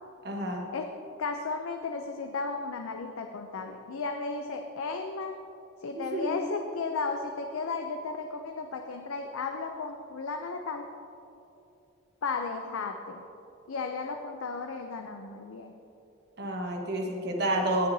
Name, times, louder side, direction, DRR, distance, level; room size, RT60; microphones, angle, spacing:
voice 1, 0.2-0.7 5.9-6.4 16.4-17.9, right 1 dB, 55° right, 0 dB, 1.3 m, -30 dB
voice 2, 1.2-5.4 5.8-10.9 12.2-13.2 13.7-15.7, left 4 dB, 90° left, 4 dB, 0.5 m, -34 dB
17.0 x 6.6 x 2.7 m, 2.8 s
head